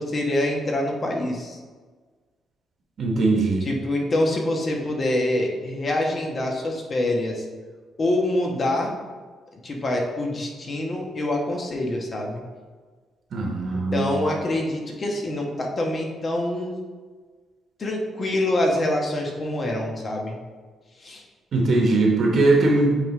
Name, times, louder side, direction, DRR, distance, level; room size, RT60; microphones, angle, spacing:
voice 1, 0.0-1.6 3.6-7.4 8.0-8.9 9.6-12.4 13.9-16.7 17.8-20.4 21.0-21.2, left 1 dB, 40° left, 0 dB, 1.2 m, -25 dB
voice 2, 3.0-3.7 13.3-14.1 21.5-23.0, right 2 dB, 55° right, 0 dB, 1.1 m, -20 dB
8.4 x 3.4 x 3.2 m, 1.4 s
cardioid pair, 90°, 0 cm